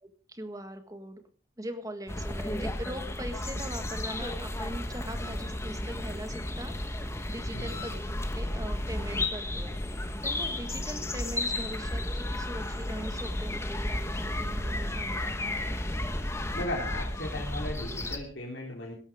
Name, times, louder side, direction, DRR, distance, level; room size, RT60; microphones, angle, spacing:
voice 1, 0.0-1.2 1.6-8.0 8.3-9.8 10.2-15.7, right 1 dB, 20° right, 8 dB, 1.7 m, -41 dB
sound 1, 2.1-18.2, left 1 dB, 15° left, 1.2 m, -33 dB
voice 2, 7.5-7.8 16.5-18.9, left 1 dB, 65° left, -3 dB, 3.5 m, -36 dB
17.5 x 13.5 x 3.6 m, 0.42 s
head